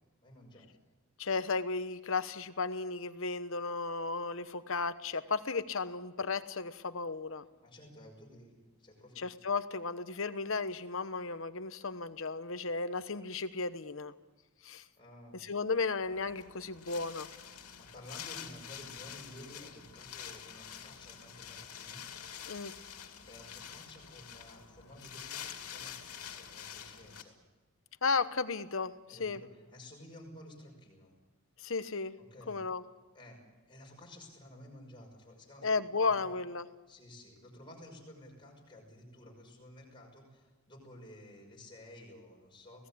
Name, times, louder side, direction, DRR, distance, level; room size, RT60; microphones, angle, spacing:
voice 1, 0.2-0.7 7.6-9.5 15.0-15.4 17.8-22.0 23.3-27.3 29.1-29.3 29.5-31.1 32.3-32.6 33.1-33.4 33.7-35.7 36.0-36.3 36.9-42.8, left 1 dB, 20° left, 0 dB, 6.0 m, -53 dB
voice 2, 1.2-7.4 9.2-14.1 14.6-14.8 15.3-17.3 22.4-22.7 28.0-29.4 31.6-32.1 32.5-32.8 35.6-36.7, left 4 dB, 65° left, 12 dB, 1.1 m, -34 dB
Wind, 16.0-27.2, left 8 dB, 90° left, 2.5 m, -47 dB
25.5 x 18.0 x 8.6 m, 1.2 s
head